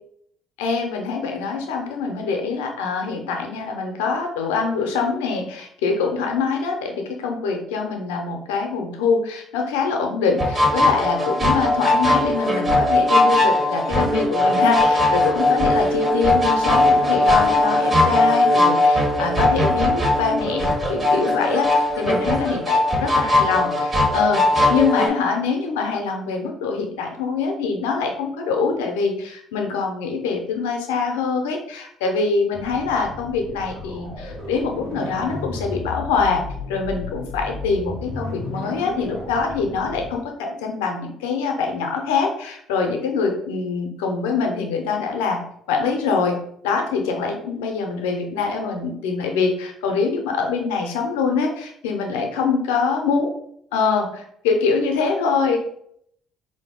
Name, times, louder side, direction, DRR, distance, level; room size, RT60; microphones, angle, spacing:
voice 1, 0.6-6.9 7.2-36.4 36.7-45.4 45.7-46.4 46.6-53.3 53.7-55.6, left 5 dB, 80° left, 3 dB, 0.6 m, -24 dB
sound 1, 10.4-25.1, left 2 dB, 35° right, 1.2 m, -19 dB
sound 2, 32.5-40.1, left 2 dB, 80° right, 1.0 m, -34 dB
3.9 x 2.7 x 3.6 m, 0.69 s
hypercardioid pair, 50°, 0 cm